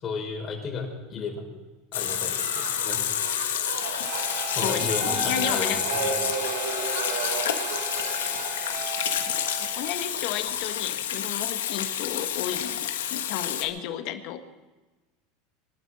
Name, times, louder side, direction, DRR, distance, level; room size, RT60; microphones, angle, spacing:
voice 1, 0.0-1.4 1.9-3.0 4.5-6.2, left 4 dB, 35° left, 1 dB, 4.8 m, -34 dB
Water tap faucet / Sink (filling or washing), 1.9-13.6, left 10 dB, 90° left, 1.4 m, -29 dB
sound 1, 2.0-8.7, right 5 dB, 85° right, 3.0 m, -34 dB
Harmonica, 4.0-10.0, right 9 dB, 40° right, 1.2 m, -38 dB
voice 2, 4.6-5.8 9.2-9.3 9.8-14.4, left 10 dB, 60° left, 8 dB, 1.6 m, -32 dB
22.5 x 12.5 x 4.3 m, 1.2 s
hypercardioid pair, 105°, 0 cm